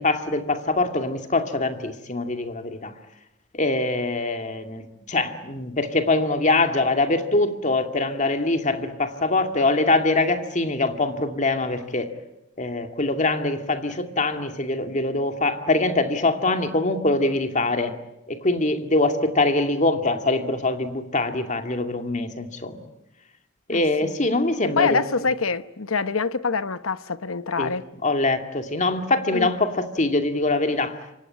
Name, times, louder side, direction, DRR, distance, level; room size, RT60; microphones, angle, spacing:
voice 1, 0.0-2.9 3.5-4.8 5.1-12.1 12.6-17.9 18.3-22.8 23.7-25.0 27.6-27.7 28.0-31.0, left 2 dB, 35° left, 2.3 m, -23 dB
voice 2, 23.7-24.1 24.6-27.9 29.3-29.5, left 5 dB, 90° left, 1.0 m, -25 dB
27.5 x 24.5 x 8.7 m
head